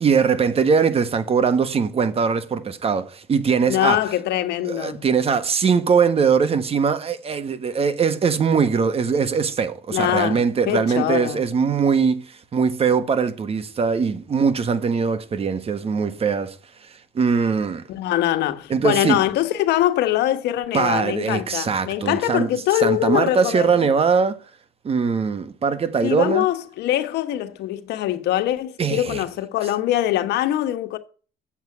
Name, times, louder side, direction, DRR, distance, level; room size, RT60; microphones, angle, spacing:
voice 1, 0.0-4.0 4.6-16.6 17.1-17.8 18.7-19.2 20.7-22.5 22.8-24.4 24.8-26.5 28.8-29.2, right 6 dB, 35° right, 1.3 m, -21 dB
voice 2, 3.7-5.0 9.9-11.4 17.9-23.9 26.0-31.0, left 13 dB, 80° left, 1.4 m, -23 dB
7.8 x 7.3 x 8.6 m
cardioid pair, 110°, 17 cm